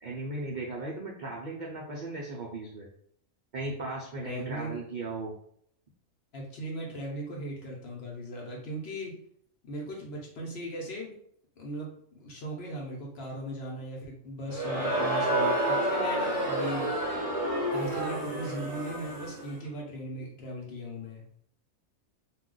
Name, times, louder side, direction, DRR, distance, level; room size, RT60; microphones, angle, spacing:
voice 1, 0.0-2.9 3.5-5.3, right 2 dB, 60° right, -4 dB, 0.5 m, -37 dB
voice 2, 4.2-4.8 6.3-9.2 9.6-11.1 11.6-16.9 17.7-21.2, right 1 dB, 55° left, -2 dB, 0.9 m, -38 dB
Crowd, 14.5-19.5, right 1 dB, 30° right, 0.8 m, -29 dB
2.4 x 2.2 x 3.7 m, 0.65 s
omnidirectional pair, 1.4 m